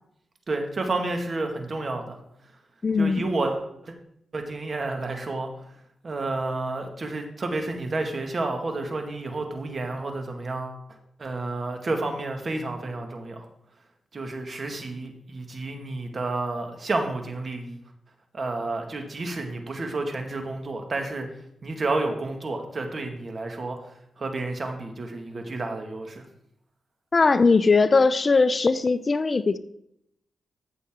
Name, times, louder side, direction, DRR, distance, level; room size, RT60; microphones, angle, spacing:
voice 1, 0.5-2.2 3.0-3.9 4.3-5.5 6.0-10.8 11.2-13.5 14.1-17.8 18.3-21.3 21.6-23.8 24.2-26.2, right 2 dB, 45° right, 4 dB, 1.9 m, -30 dB
voice 2, 2.8-3.2 27.1-29.6, left 4 dB, 40° left, 14 dB, 0.5 m, -20 dB
14.0 x 6.8 x 3.7 m, 0.77 s
cardioid pair, 70°, 0 cm